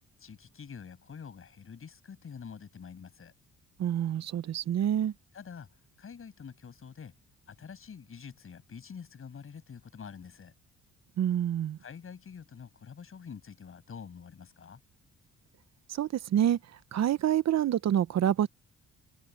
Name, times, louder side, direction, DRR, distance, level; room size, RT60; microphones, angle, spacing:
voice 1, 0.2-3.3 5.3-5.7 6.0-7.1 7.5-10.5 11.8-14.8, left 6 dB, 45° left, 7.0 m, -46 dB
voice 2, 3.8-5.1 11.2-11.8 15.9-16.6 16.9-18.5, right 10 dB, 60° right, 1.0 m, -27 dB
cardioid pair, 90°, 30 cm